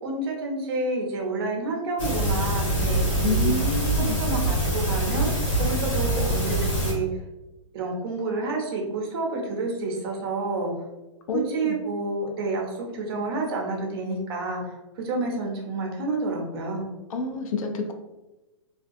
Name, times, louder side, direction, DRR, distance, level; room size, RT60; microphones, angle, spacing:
voice 1, 0.0-3.5 4.0-5.3 5.6-7.1 7.7-10.7 11.3-16.9, right 3 dB, 45° right, 0 dB, 0.6 m, -29 dB
sound 1, 2.0-6.9, right 1 dB, 60° left, 1.3 m, -24 dB
voice 2, 3.2-4.2 11.3-11.8 17.1-17.9, left 3 dB, 85° left, 5 dB, 0.5 m, -28 dB
2.3 x 2.2 x 2.6 m, 1.0 s
hypercardioid pair, 165°, 17 cm